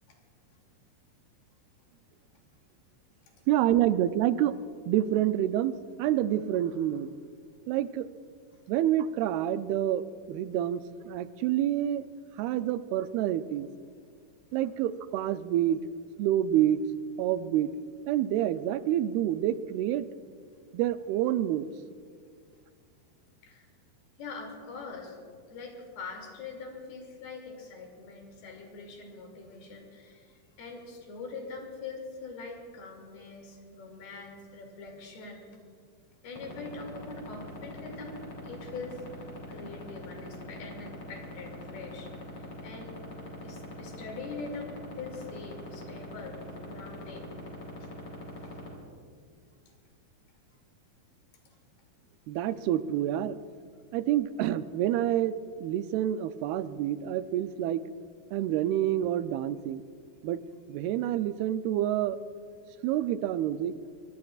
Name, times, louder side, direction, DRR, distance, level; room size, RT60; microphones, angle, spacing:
voice 1, 3.5-4.6 4.9-7.1 7.7-8.1 8.7-12.1 12.4-13.7 14.5-15.9 16.2-16.8 17.2-17.7 18.1-20.1 20.7-21.7 52.3-53.4 53.9-57.8 58.3-59.8 60.2-60.4 60.7-62.2 62.8-63.8, right 12 dB, 85° right, 12 dB, 2.5 m, -28 dB
voice 2, 24.2-25.2 25.5-35.5 36.2-38.2 38.4-43.0 43.4-47.3 47.8-47.9 48.4-48.6, left 4 dB, 75° left, 1 dB, 4.5 m, -43 dB
sound 1, 36.4-48.7, left 3 dB, 40° left, 4.1 m, -41 dB
24.0 x 22.0 x 2.4 m, 2.1 s
omnidirectional pair, 4.4 m